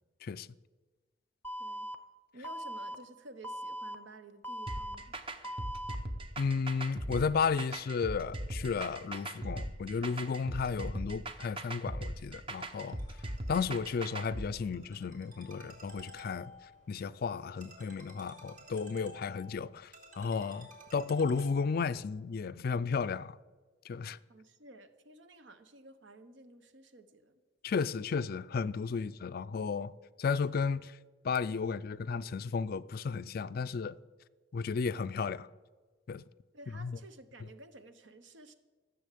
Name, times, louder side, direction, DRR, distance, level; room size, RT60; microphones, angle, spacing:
Alarm, 1.4-1.9 2.4-2.9 3.4-3.9 4.4-4.9 5.4-5.9, right 1 dB, 10° left, 0.7 m, -40 dB
voice 1, 2.3-5.2 24.3-27.4 36.5-38.5, right 2 dB, 70° right, 1.0 m, -53 dB
sound 1, 4.7-14.5, right 1 dB, 30° right, 0.8 m, -39 dB
voice 2, 6.4-13.0 13.5-16.5 16.9-23.4 23.9-24.2 27.6-29.9 30.2-31.0 31.2-34.0 34.5-35.5 36.1-36.2 36.8-37.0, left 5 dB, 50° left, 0.4 m, -33 dB
Ringtone, 12.4-22.0, left 1 dB, 45° right, 3.1 m, -54 dB
14.0 x 7.1 x 8.4 m
head